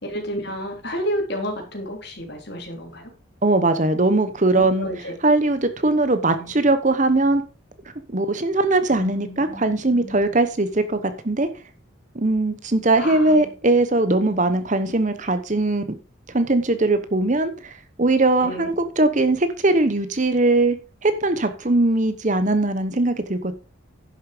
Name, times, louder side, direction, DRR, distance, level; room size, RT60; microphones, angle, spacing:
voice 1, 0.0-3.1 4.6-5.1 6.4-6.5 8.9-10.3 13.0-13.5 18.4-18.7, equal, 55° left, 2 dB, 3.7 m, -31 dB
voice 2, 3.4-4.9 5.2-7.4 8.1-11.0 11.2-11.5 12.1-15.8 16.3-17.7 18.0-20.8 21.0-23.5, right 2 dB, 35° right, 10 dB, 1.0 m, -20 dB
11.0 x 7.1 x 5.1 m, 0.34 s
head